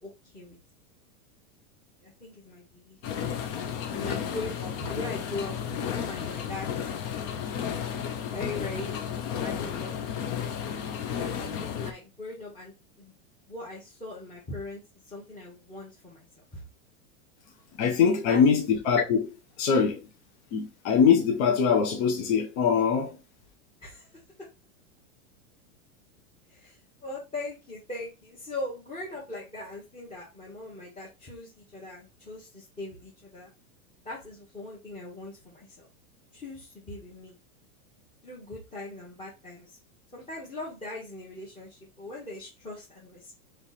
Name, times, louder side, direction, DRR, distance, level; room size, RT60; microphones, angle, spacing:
voice 1, 0.0-0.6 2.0-3.0 3.9-7.1 8.2-9.0 9.4-10.5 11.2-13.1 13.5-16.6 18.0-18.4 23.8-24.5 26.5-33.5 34.0-35.9 36.3-37.4 38.2-39.8 40.1-43.4, left 2 dB, 15° left, 1.2 m, -40 dB
sound 1, 3.0-11.9, left 8 dB, 35° left, 0.6 m, -33 dB
voice 2, 17.8-20.0 20.5-23.2, left 6 dB, 50° left, 1.0 m, -23 dB
3.4 x 3.2 x 4.1 m
supercardioid pair, 150°, 42 cm